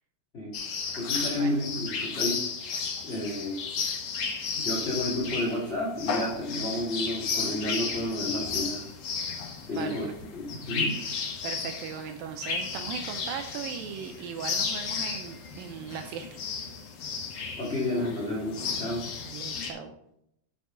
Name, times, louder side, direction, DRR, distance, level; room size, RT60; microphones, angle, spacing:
sound 1, 0.5-19.7, left 5 dB, 65° left, 1.6 m, -33 dB
voice 1, 1.0-2.5 3.0-3.6 4.5-8.9 9.7-11.0 17.6-19.1, left 1 dB, 25° left, -4 dB, 1.3 m, -31 dB
voice 2, 9.7-10.1 11.4-16.4 19.2-19.9, right 7 dB, 80° right, 5 dB, 2.2 m, -38 dB
7.9 x 6.2 x 3.8 m, 0.77 s
omnidirectional pair, 4.5 m